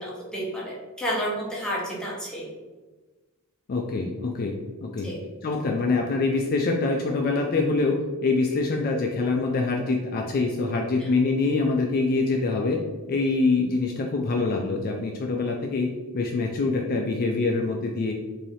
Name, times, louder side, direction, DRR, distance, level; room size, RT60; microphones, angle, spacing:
voice 1, 0.0-2.5 5.0-5.2 11.0-11.1, equal, 5° left, -6 dB, 0.9 m, -31 dB
voice 2, 3.7-4.5 4.8-5.1 5.4-12.8 13.1-15.9 16.1-18.1, left 3 dB, 40° left, 1 dB, 0.3 m, -25 dB
3.2 x 2.7 x 4.1 m, 1.3 s
head